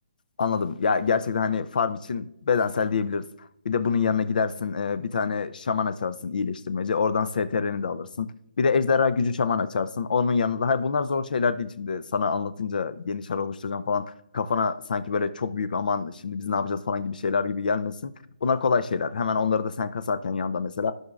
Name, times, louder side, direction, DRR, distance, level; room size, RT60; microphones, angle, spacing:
voice 1, 0.4-3.3 3.6-8.3 8.6-18.1 18.4-20.9, left 5 dB, 65° left, 14 dB, 0.5 m, -26 dB
14.0 x 5.5 x 2.4 m, 0.79 s
hypercardioid pair, 155°, 5 cm